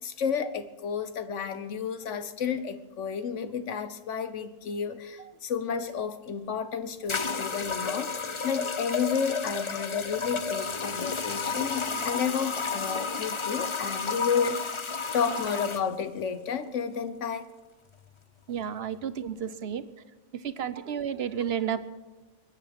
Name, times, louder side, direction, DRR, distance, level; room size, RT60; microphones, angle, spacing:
voice 1, 0.0-14.8 15.1-17.5, left 6 dB, 75° left, 11 dB, 1.3 m, -31 dB
sound 1, 6.3-6.4 7.1-15.8, left 5 dB, 30° left, 0.6 m, -32 dB
voice 2, 18.5-19.8 20.3-21.8, right 8 dB, 60° right, 13 dB, 1.0 m, -32 dB
23.0 x 9.7 x 6.0 m, 1.2 s
omnidirectional pair, 1.3 m